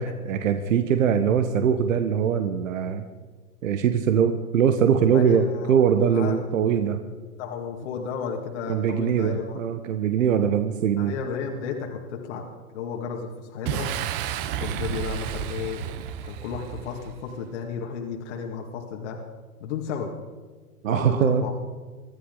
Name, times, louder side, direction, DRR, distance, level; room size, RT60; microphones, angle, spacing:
voice 1, 0.0-3.0 3.6-7.0 8.7-11.1 20.8-21.4, right 7 dB, 60° right, 8 dB, 1.4 m, -22 dB
voice 2, 5.1-6.4 7.4-9.6 11.0-12.4 12.7-13.9 14.6-19.2 19.6-20.1 20.9-21.6, left 6 dB, 50° left, 0 dB, 2.3 m, -33 dB
Boom, 13.6-17.3, right 9 dB, 40° right, 1.2 m, -31 dB
25.5 x 12.5 x 4.0 m, 1.4 s
figure-of-eight pair, 110°, 45 cm